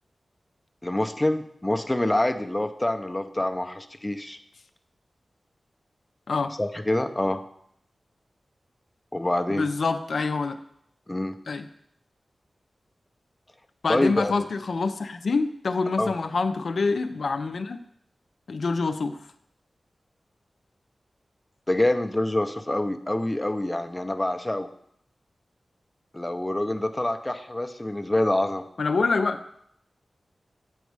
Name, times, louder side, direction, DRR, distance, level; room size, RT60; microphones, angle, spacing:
voice 1, 0.8-4.4 6.6-7.4 9.1-9.7 11.1-11.4 13.9-14.3 16.0-16.1 21.7-24.7 26.1-28.6, left 1 dB, 15° left, 6 dB, 0.5 m, -26 dB
voice 2, 9.5-10.6 11.5-11.7 13.8-17.8 18.5-19.2 28.8-29.4, left 4 dB, 75° left, 8 dB, 0.4 m, -26 dB
8.2 x 4.1 x 4.7 m, 0.72 s
wide cardioid pair, 80°, 0 cm